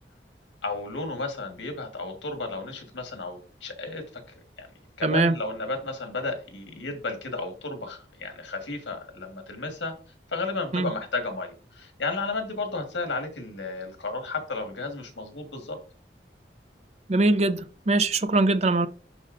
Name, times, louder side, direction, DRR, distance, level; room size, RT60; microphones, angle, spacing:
voice 1, 0.6-4.0 4.6-4.7 5.0-9.9 10.3-15.8, left 3 dB, 90° left, 1.6 m, -33 dB
voice 2, 5.0-5.4 10.7-10.9 17.1-18.9, right 2 dB, 35° right, 0.5 m, -22 dB
11.0 x 4.2 x 2.6 m
head